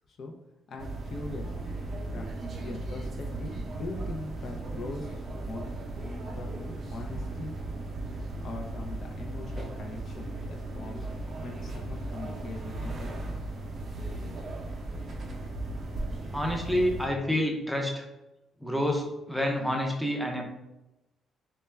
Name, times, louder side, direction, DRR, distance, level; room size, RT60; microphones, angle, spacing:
voice 1, 0.7-1.5 2.1-2.3 2.6-5.7 6.4-6.6 6.9-7.6 8.4-11.1 11.4-13.2, left 3 dB, 55° left, 2 dB, 0.3 m, -41 dB
sound 1, 0.8-17.1, right 2 dB, 50° right, 0.5 m, -36 dB
voice 2, 16.3-18.1 18.6-20.4, left 1 dB, ahead, 1 dB, 0.5 m, -28 dB
2.2 x 2.1 x 3.2 m, 0.95 s
cardioid pair, 90°, 0 cm